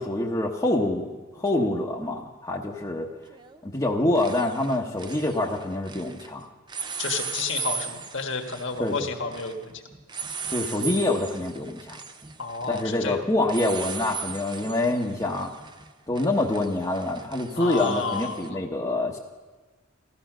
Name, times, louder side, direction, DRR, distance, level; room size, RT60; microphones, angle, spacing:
voice 1, 0.0-3.1 3.6-6.5 8.8-9.1 10.5-12.0 12.7-15.5 16.1-19.2, left 2 dB, 15° left, -3 dB, 1.0 m, -26 dB
sound 1, 1.5-1.6 3.3-3.6 3.9-6.3 6.7-18.5, right 5 dB, 20° right, 0.6 m, -38 dB
voice 2, 7.0-9.7 12.4-13.2 17.5-18.6, left 4 dB, 55° left, 3 dB, 1.6 m, -31 dB
16.0 x 14.0 x 6.1 m, 1.3 s
head